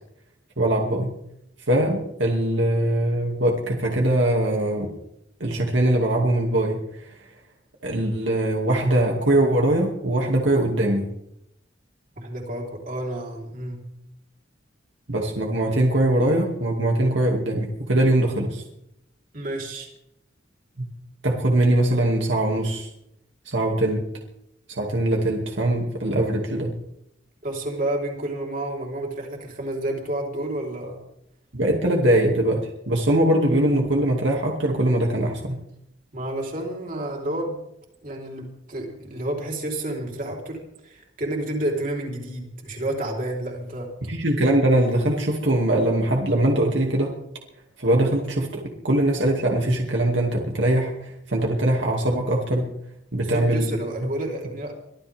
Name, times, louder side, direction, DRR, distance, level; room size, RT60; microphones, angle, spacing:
voice 1, 0.6-1.1 1.7-4.9 5.4-6.8 7.8-11.1 15.1-18.6 20.8-20.9 21.2-22.9 23.5-24.0 24.7-26.7 31.5-35.6 44.1-47.1 47.8-52.7 53.1-53.8, right 1 dB, 75° right, 0 dB, 2.5 m, -22 dB
voice 2, 12.2-13.8 19.3-19.9 27.4-31.0 36.1-37.6 38.0-43.9 53.2-54.7, right 1 dB, 45° right, 0 dB, 4.2 m, -30 dB
24.0 x 15.0 x 3.7 m, 0.80 s
head